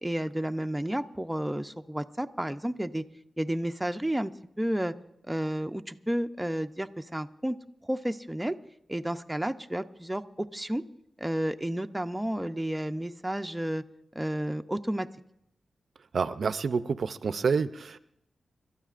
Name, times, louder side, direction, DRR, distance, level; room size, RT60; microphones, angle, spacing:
voice 1, 0.0-3.0 3.4-4.3 4.6-4.9 5.3-7.6 7.8-8.6 8.9-10.8 11.2-13.8 14.1-15.1, right 1 dB, 5° right, 6 dB, 0.5 m, -31 dB
voice 2, 16.1-18.0, right 5 dB, 65° right, 12 dB, 0.5 m, -28 dB
29.5 x 12.5 x 2.5 m, 0.78 s
wide cardioid pair, 90°, 0 cm